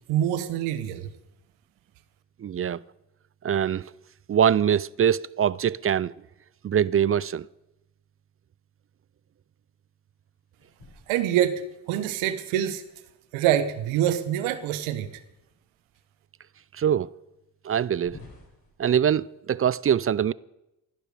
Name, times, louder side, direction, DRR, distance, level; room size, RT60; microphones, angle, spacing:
voice 1, 0.1-1.1 11.1-11.6 11.9-12.8 13.3-15.1, right 11 dB, 85° right, 1.0 m, -25 dB
voice 2, 2.4-2.8 3.4-3.8 4.3-6.1 6.6-7.5 16.7-17.1 17.6-18.2 18.8-20.3, right 9 dB, 30° right, 0.4 m, -23 dB
sound 1, 10.6-11.9 13.7-15.2 15.9-16.0 16.7-16.8 17.9-18.7, left 2 dB, 50° left, 6.2 m, -52 dB
17.0 x 11.5 x 4.9 m
hypercardioid pair, 40°, 47 cm